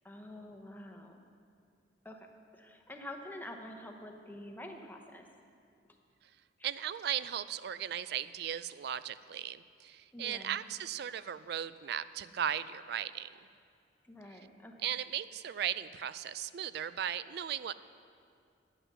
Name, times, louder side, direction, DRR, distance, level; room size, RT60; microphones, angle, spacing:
voice 1, 0.0-1.2 2.0-2.3 2.5-5.3 10.1-10.6 14.1-14.9, left 1 dB, 10° left, 2 dB, 0.8 m, -47 dB
voice 2, 6.6-13.3 14.8-17.7, right 9 dB, 55° right, 15 dB, 0.3 m, -37 dB
9.4 x 8.1 x 6.6 m, 2.3 s
head